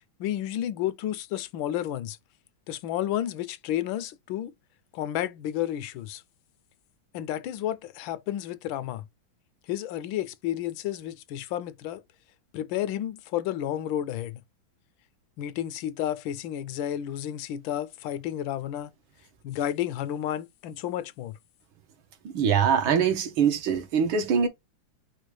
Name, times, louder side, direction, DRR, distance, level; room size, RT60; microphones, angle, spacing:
voice 1, 0.2-2.2 2.7-4.5 4.9-6.2 7.1-9.0 9.7-12.0 12.5-14.4 15.4-18.9 19.4-21.4, left 12 dB, 80° left, 1.3 m, -31 dB
voice 2, 22.3-24.5, right 7 dB, 85° right, 1.8 m, -23 dB
5.0 x 2.2 x 4.6 m
omnidirectional pair, 2.2 m